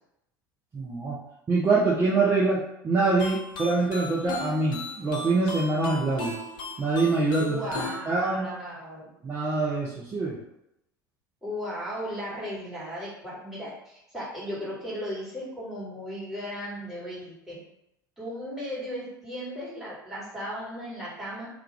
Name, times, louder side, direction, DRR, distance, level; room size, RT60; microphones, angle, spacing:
voice 1, 0.7-1.2 1.5-6.4 6.8-7.6 8.1-8.5 9.2-10.4, right 3 dB, 20° right, -4 dB, 0.5 m, -25 dB
sound 1, 3.2-8.0, left 3 dB, 45° left, 0.5 m, -37 dB
voice 2, 7.4-9.1 11.4-17.6 18.2-21.5, equal, 5° right, -8 dB, 1.4 m, -36 dB
2.4 x 2.3 x 3.0 m, 0.84 s
figure-of-eight pair, 70°, 11 cm